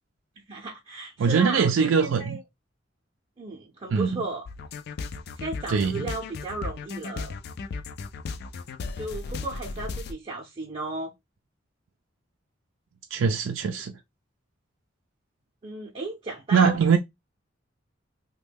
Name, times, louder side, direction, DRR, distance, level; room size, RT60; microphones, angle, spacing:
voice 1, 0.5-2.4 3.4-4.5 5.4-7.3 9.0-11.1 13.8-13.9 15.6-16.8, right 2 dB, 30° right, 0.6 m, -35 dB
voice 2, 1.2-2.4 3.9-4.2 5.7-6.1 13.1-14.0 16.5-17.0, right 6 dB, 90° right, 0.4 m, -22 dB
sound 1, 4.4-10.1, left 4 dB, 55° left, 0.4 m, -35 dB
3.1 x 2.2 x 3.4 m
head